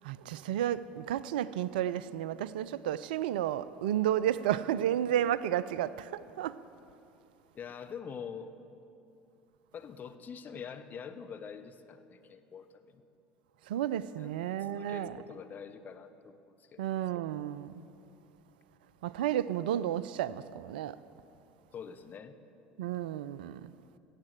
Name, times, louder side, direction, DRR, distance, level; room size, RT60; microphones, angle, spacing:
voice 1, 0.0-6.6 13.7-15.2 16.8-17.8 19.0-21.0 22.8-23.7, right 11 dB, 70° right, 0.4 m, -32 dB
voice 2, 7.5-8.5 9.7-13.0 14.2-14.3 14.6-16.8 21.7-22.3, left 7 dB, 35° left, 0.9 m, -45 dB
17.0 x 7.4 x 7.6 m
figure-of-eight pair, 70°, 5 cm